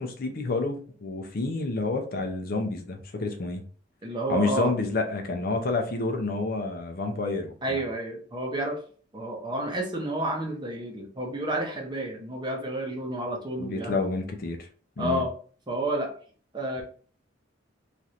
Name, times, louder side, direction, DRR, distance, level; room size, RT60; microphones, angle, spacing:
voice 1, 0.0-3.6 4.3-7.8 13.6-14.7 15.0-15.2, left 3 dB, 50° left, 4 dB, 0.5 m, -29 dB
voice 2, 4.0-4.7 7.6-8.8 9.1-14.0 15.0-15.3 15.7-16.1 16.5-16.8, right 1 dB, 25° right, 1 dB, 0.7 m, -30 dB
3.1 x 2.5 x 2.7 m, 0.43 s
head